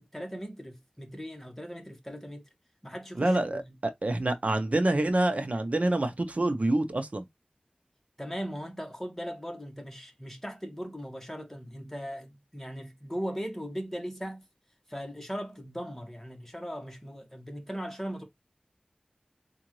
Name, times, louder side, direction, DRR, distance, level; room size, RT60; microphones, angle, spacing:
voice 1, 0.0-2.5 2.8-3.7 8.2-14.4 14.9-18.2, equal, 10° left, 1.4 m, -38 dB
voice 2, 3.1-7.3, right 1 dB, 55° right, 0.7 m, -27 dB
3.8 x 2.5 x 3.0 m
wide cardioid pair, 50°, 3 cm